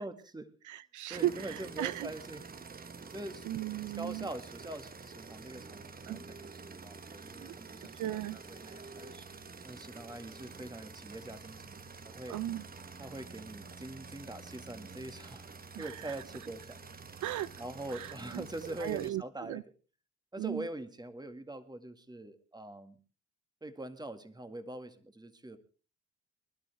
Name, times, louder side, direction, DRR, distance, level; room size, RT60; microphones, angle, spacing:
voice 1, 0.0-0.8 1.1-2.5 3.1-3.5 4.0-9.2 9.6-12.4 13.0-15.5 15.8-16.8 17.6-19.6 20.3-23.0 23.6-25.6, right 1 dB, 15° right, 9 dB, 2.0 m, -44 dB
voice 2, 0.7-2.1 3.5-4.3 6.1-6.2 7.4-7.5 7.9-8.4 12.3-12.6 15.7-16.1 17.2-17.6 17.9-18.4 18.8-19.6 20.4-20.6, right 14 dB, 75° right, 17 dB, 0.6 m, -36 dB
sound 1, 1.1-19.1, right 4 dB, 30° right, 1.2 m, -48 dB
24.0 x 11.5 x 3.4 m, 0.37 s
cardioid pair, 90°, 30 cm